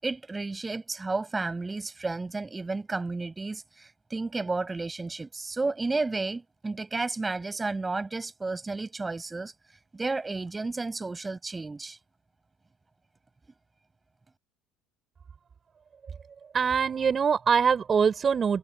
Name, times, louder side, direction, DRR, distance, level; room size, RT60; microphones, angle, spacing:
voice 1, 0.0-9.5 9.9-12.0, right 3 dB, 20° right, 7.9 m, -32 dB
voice 2, 16.5-18.6, right 6 dB, 35° right, 5.6 m, -23 dB
hypercardioid pair, 70°, 0 cm